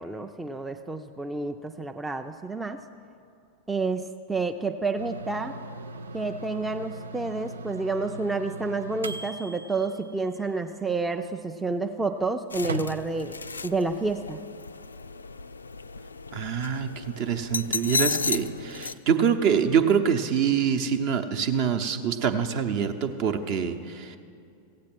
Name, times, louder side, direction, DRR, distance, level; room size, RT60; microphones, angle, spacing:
voice 1, 0.0-2.8 3.7-5.5 6.1-13.4 13.6-14.4, right 3 dB, 10° right, 5 dB, 0.4 m, -29 dB
sound 1, 5.0-13.6, right 3 dB, 70° right, 0.4 m, -40 dB
sound 2, 12.5-18.9, left 4 dB, 75° left, 0.3 m, -33 dB
voice 2, 16.3-24.2, right 7 dB, 45° right, 8 dB, 0.8 m, -25 dB
15.5 x 8.5 x 6.1 m, 2.5 s
figure-of-eight pair, 90°, 0 cm